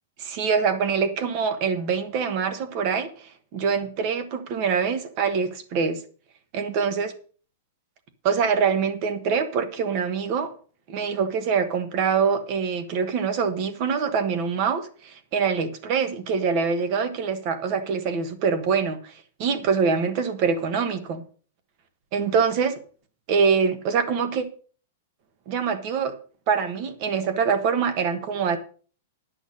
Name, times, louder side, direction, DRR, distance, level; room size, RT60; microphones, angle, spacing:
voice 1, 0.2-6.0 6.5-7.1 8.2-10.5 10.9-19.1 19.4-21.2 22.1-22.8 23.3-24.4 25.5-26.1 26.5-28.6, right 6 dB, 35° right, 10 dB, 1.2 m, -24 dB
10.5 x 6.4 x 6.4 m, 0.42 s
supercardioid pair, 170°, 0 cm